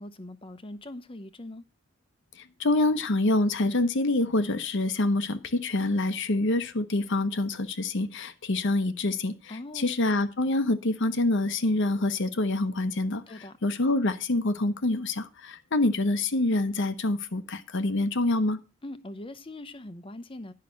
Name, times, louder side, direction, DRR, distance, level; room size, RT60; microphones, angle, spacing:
voice 1, 0.0-1.6 9.5-9.9 13.3-13.6 18.8-20.5, left 1 dB, 25° left, 0.8 m, -41 dB
voice 2, 2.6-13.2 13.6-18.6, left 2 dB, 55° left, 0.8 m, -26 dB
10.5 x 5.7 x 6.2 m
head